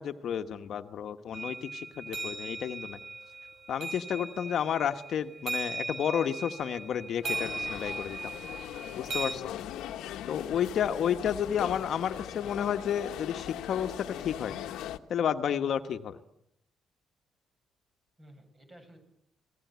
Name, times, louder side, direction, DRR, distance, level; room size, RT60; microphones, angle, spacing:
voice 1, 0.0-3.0 3.7-8.3 9.0-9.5 10.3-14.6 15.1-16.2, left 8 dB, 65° left, 8 dB, 1.2 m, -31 dB
sound 1, 1.3-9.3, right 3 dB, 65° right, 5.1 m, -38 dB
sound 2, 7.2-15.0, left 12 dB, 90° left, 1.2 m, -40 dB
voice 2, 11.6-12.7 18.2-19.0, right 1 dB, 30° right, 6 dB, 8.0 m, -54 dB
29.5 x 19.0 x 9.4 m, 0.78 s
cardioid pair, 90°, 0 cm